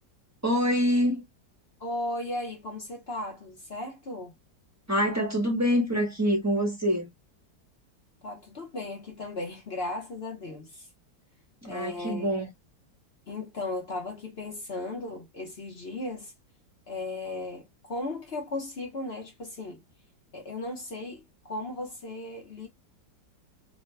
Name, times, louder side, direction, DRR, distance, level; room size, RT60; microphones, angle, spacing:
voice 1, 0.4-1.2 4.9-7.1 11.6-12.5, equal, 15° right, 0.7 m, -25 dB
voice 2, 1.8-4.3 8.2-10.9 11.6-12.3 13.3-16.3 16.9-19.8 20.3-22.7, left 2 dB, 50° left, 0.8 m, -36 dB
3.3 x 2.2 x 3.1 m
omnidirectional pair, 2.0 m